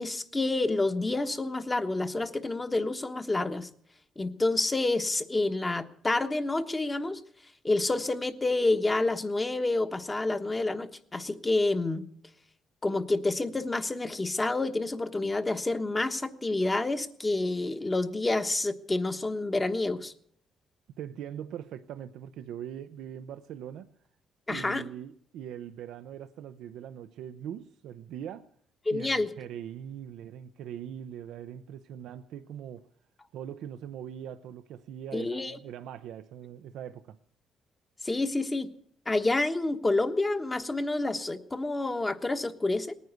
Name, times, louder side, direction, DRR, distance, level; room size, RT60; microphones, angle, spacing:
voice 1, 0.0-3.7 4.2-7.2 7.6-12.0 12.8-20.1 24.5-24.8 28.9-29.3 35.1-35.6 38.0-38.7 39.1-42.9, left 2 dB, 20° left, 1.2 m, -28 dB
voice 2, 21.0-23.9 24.5-28.5 28.9-32.9 33.3-37.2, right 9 dB, 85° right, 0.5 m, -41 dB
19.0 x 9.4 x 8.0 m
cardioid pair, 90°, 0 cm